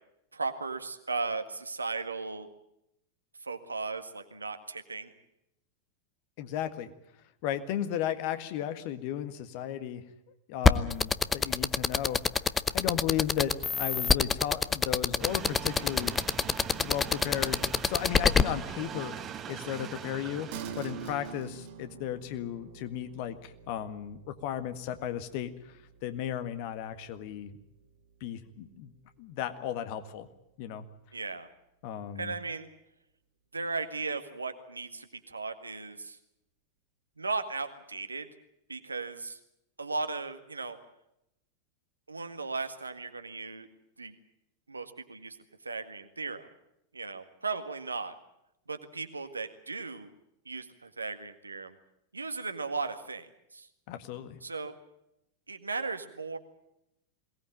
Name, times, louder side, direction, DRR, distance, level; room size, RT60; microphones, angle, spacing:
voice 1, 0.3-2.5 3.4-5.1 31.1-31.5 32.1-32.7 33.5-36.2 37.2-38.3 38.7-39.4 39.8-40.8 42.1-43.7 44.0-44.1 44.7-45.4 45.6-46.5 46.9-48.1 48.7-50.1 50.4-51.8 52.1-53.7 54.4-54.7 55.5-56.4, right 4 dB, 80° right, 8 dB, 1.8 m, -36 dB
voice 2, 6.4-6.9 7.4-10.0 10.5-12.2 12.7-16.2 16.8-19.2 19.5-20.5 20.8-27.6 28.2-28.9 29.2-30.3 30.6-30.8 31.8-32.3 53.9-54.4, left 10 dB, 45° left, 10 dB, 1.7 m, -35 dB
sound 1, 10.6-18.4, left 5 dB, 15° left, 0.9 m, -24 dB
sound 2, 15.2-21.3, right 8 dB, 25° right, 1.7 m, -42 dB
sound 3, 20.5-30.2, right 8 dB, 50° right, 2.7 m, -47 dB
22.0 x 18.5 x 8.8 m, 0.83 s
figure-of-eight pair, 90°, 0 cm